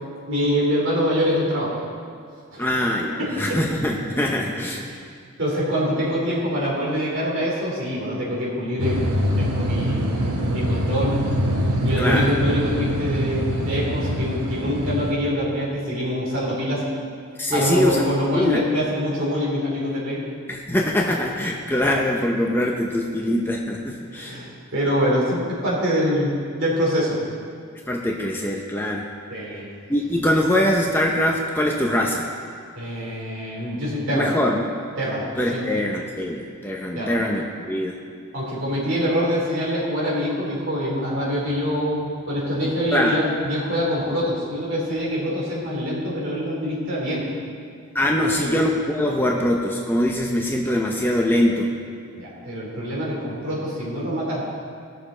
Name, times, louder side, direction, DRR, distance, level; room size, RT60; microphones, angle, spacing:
voice 1, 0.3-1.8 2.5-2.7 3.2-3.6 4.8-5.0 5.4-9.0 9.4-11.2 11.8-16.8 17.5-20.2 24.1-27.2 29.3-29.6 32.7-34.3 35.0-35.8 36.9-37.2 38.3-47.2 48.2-48.5 52.2-54.4, equal, 55° right, -6 dB, 3.5 m, -25 dB
voice 2, 2.6-4.8 12.0-12.3 17.4-18.1 18.3-18.6 20.5-24.4 27.9-29.1 29.9-32.3 34.1-34.6 35.4-38.0 42.9-43.3 47.9-51.7, left 1 dB, 10° left, 0 dB, 0.6 m, -23 dB
sound 1, 8.8-15.1, equal, 85° right, 1.2 m, -24 dB
18.0 x 6.7 x 4.4 m, 2.2 s
head